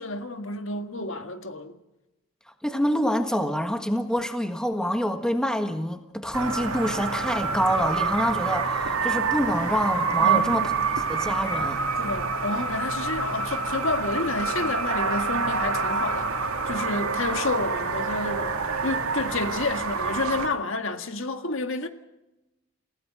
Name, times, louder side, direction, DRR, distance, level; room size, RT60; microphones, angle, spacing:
voice 1, 0.0-1.8 10.2-10.7 12.0-16.3 16.7-18.6 18.8-21.9, left 2 dB, 65° left, 1.7 m, -30 dB
voice 2, 2.6-10.7 11.1-11.8, equal, 5° left, 1.5 m, -26 dB
sound 1, 6.3-20.5, right 4 dB, 85° right, 2.2 m, -27 dB
29.0 x 17.0 x 6.4 m
head